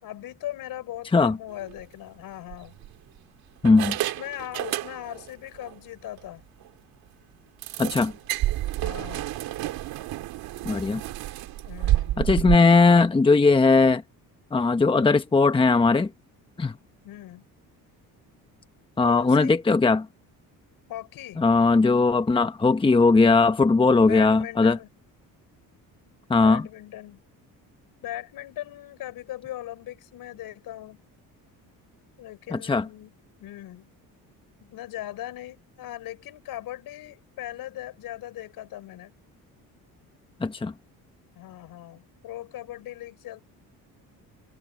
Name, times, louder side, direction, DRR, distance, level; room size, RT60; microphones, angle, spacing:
voice 1, 0.0-2.8 4.0-6.4 8.8-9.3 11.6-12.2 17.0-17.4 19.0-19.6 20.9-21.4 24.0-24.9 26.4-27.2 28.0-31.0 32.2-33.1 33.4-33.9 34.7-39.1 41.3-43.4, left 13 dB, 75° left, 4.9 m, -39 dB
sound 1, 1.6-1.8 2.5-3.2 3.6-5.3 5.6-5.8 6.2-6.3 6.6-6.7 7.6-12.6, right 15 dB, 85° right, 2.5 m, -29 dB
voice 2, 3.6-4.0 7.8-8.1 10.6-11.0 12.2-14.0 14.5-16.1 16.6-16.7 19.0-20.1 21.4-24.8 26.3-26.7 32.5-32.9 40.4-40.7, left 3 dB, 15° left, 1.1 m, -19 dB
cardioid pair, 130°, 35 cm